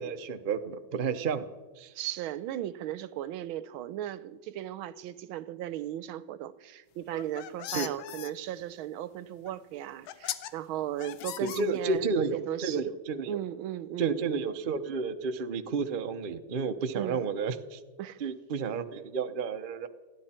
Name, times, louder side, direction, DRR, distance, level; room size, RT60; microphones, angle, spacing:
voice 1, 0.0-1.5 1.8-1.9 7.7-7.9 11.4-13.4 14.0-17.8 18.2-19.9, right 5 dB, 60° right, 0.5 m, -31 dB
voice 2, 1.9-12.9 13.3-14.4 16.9-17.2 18.0-18.2, right 12 dB, 80° right, 1.5 m, -37 dB
sound 1, 7.0-8.3 9.5-9.6 10.1-10.5 11.0-12.1, left 12 dB, 80° left, 1.6 m, -38 dB
29.5 x 10.5 x 4.4 m
omnidirectional pair, 2.3 m